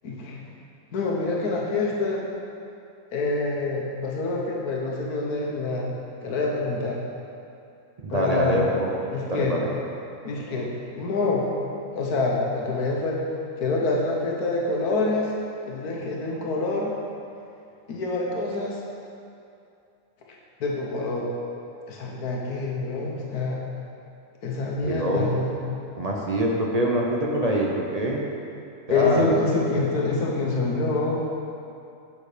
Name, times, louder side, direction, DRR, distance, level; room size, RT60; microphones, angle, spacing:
voice 1, 0.0-0.4 0.9-2.2 3.1-5.9 6.2-7.0 8.1-8.6 9.1-9.6 10.2-10.7 11.0-11.4 11.9-13.2 13.6-15.3 15.7-17.0 17.9-18.8 20.6-21.3 21.9-23.6 24.4-25.5 28.9-31.2, left 3 dB, 85° left, -2 dB, 1.5 m, -26 dB
voice 2, 8.0-8.9 9.3-9.7 24.8-25.3 26.0-28.2 28.9-29.4, right 1 dB, 35° right, -2 dB, 0.7 m, -24 dB
7.1 x 7.0 x 4.9 m, 2.6 s
omnidirectional pair, 1.6 m